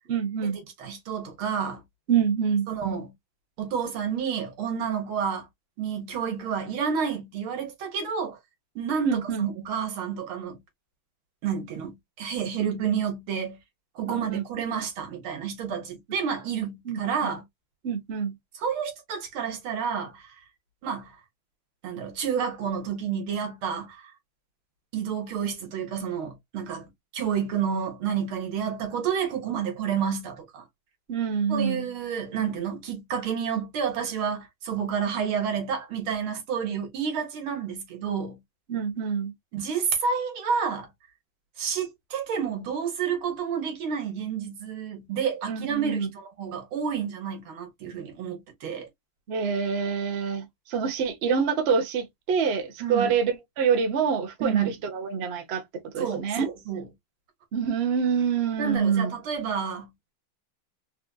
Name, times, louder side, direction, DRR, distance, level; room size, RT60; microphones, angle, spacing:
voice 1, 0.1-0.6 2.1-2.7 9.0-9.5 14.0-14.4 16.9-17.3 17.8-18.3 31.1-31.9 38.7-39.3 45.5-46.1 49.3-56.5 57.5-59.1, right 6 dB, 50° right, 0.7 m, -26 dB
voice 2, 0.8-1.8 2.7-3.1 3.6-5.5 5.8-8.4 8.8-10.6 11.4-13.6 14.0-17.4 18.6-20.4 20.8-21.2 21.8-24.1 24.9-30.6 31.5-38.4 39.5-40.9 41.6-48.9 52.8-53.2 54.4-54.7 56.0-56.8 58.6-59.9, right 7 dB, 75° right, 2.0 m, -30 dB
4.2 x 2.4 x 2.2 m
omnidirectional pair, 2.3 m